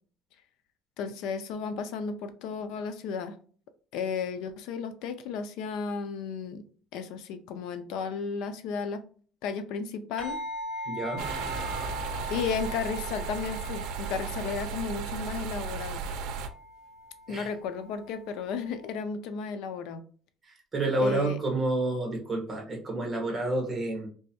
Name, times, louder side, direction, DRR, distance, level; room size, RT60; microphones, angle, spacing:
voice 1, 1.0-3.4 3.9-6.6 6.9-9.0 9.4-10.4 12.3-16.0 17.3-20.0 21.0-21.4, left 5 dB, 75° left, 0.4 m, -34 dB
sound 1, 10.2-18.9, left 1 dB, 30° left, 1.6 m, -41 dB
voice 2, 10.8-11.2 17.3-17.5 20.7-24.1, right 2 dB, 20° right, 1.3 m, -29 dB
sound 2, 11.2-16.5, right 6 dB, 75° right, 0.5 m, -35 dB
3.4 x 3.0 x 2.8 m
cardioid pair, 165°, 0 cm